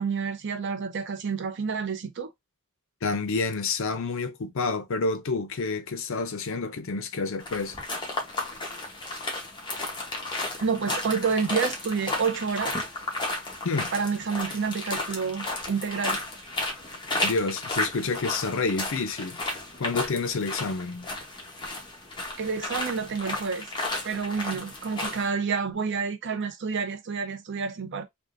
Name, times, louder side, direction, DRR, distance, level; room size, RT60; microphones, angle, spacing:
voice 1, 0.0-2.3 10.6-12.8 13.9-16.2 22.4-23.6 24.0-28.0, right 5 dB, 55° right, 0.6 m, -29 dB
voice 2, 3.0-7.8 13.6-13.9 17.2-19.4 19.8-21.1, left 4 dB, 65° left, 0.6 m, -29 dB
sound 1, 7.4-25.3, left 2 dB, 20° left, 1.0 m, -33 dB
3.5 x 2.4 x 2.5 m
head